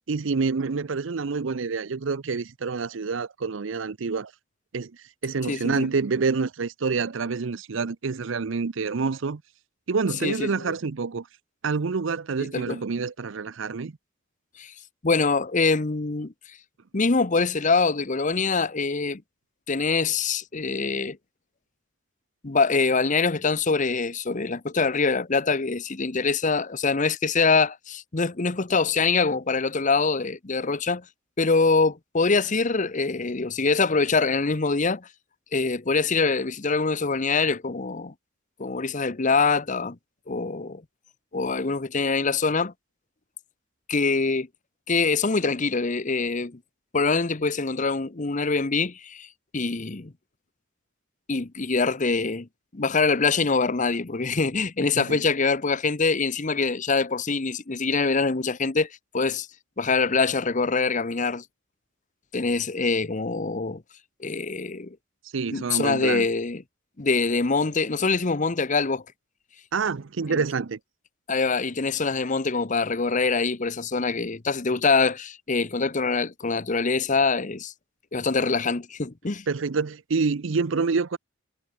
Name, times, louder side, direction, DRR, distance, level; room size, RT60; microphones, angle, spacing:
voice 1, 0.1-4.3 4.7-4.9 5.2-9.4 9.9-11.2 11.6-13.9 54.9-55.2 65.3-66.3 69.7-70.8 79.5-81.2, right 4 dB, 70° right, 0.6 m, -27 dB
voice 2, 5.5-5.9 10.2-10.7 12.4-12.8 14.6-14.7 15.0-16.3 16.9-19.2 19.7-21.2 22.4-31.0 31.4-35.1 35.5-38.1 38.6-40.0 40.3-40.8 41.3-42.7 43.9-44.5 44.9-46.6 46.9-49.3 49.5-50.1 51.3-52.5 52.7-58.9 59.1-59.5 59.8-61.4 62.3-63.8 64.2-65.0 65.5-66.6 67.0-69.0 70.3-70.4 71.3-77.7 78.1-79.4, left 4 dB, 40° left, 0.9 m, -24 dB
head